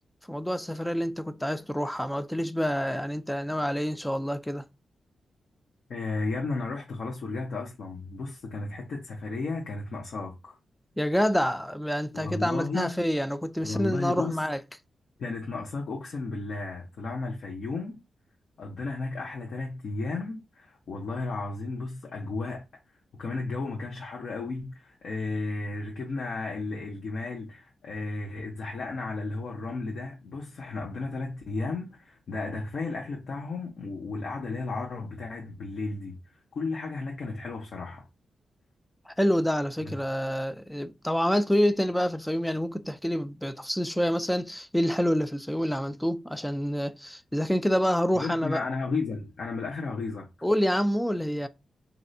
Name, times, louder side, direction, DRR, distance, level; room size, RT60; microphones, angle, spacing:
voice 1, 0.3-4.6 11.0-14.6 39.1-48.6 50.4-51.5, equal, 5° left, 0.4 m, -27 dB
voice 2, 5.9-10.6 12.1-12.9 13.6-14.4 15.2-18.0 18.6-22.6 23.2-36.2 36.5-38.1 39.8-39.9 48.1-50.3, left 3 dB, 70° left, 0.8 m, -34 dB
3.2 x 2.6 x 2.6 m
cardioid pair, 70°, 0 cm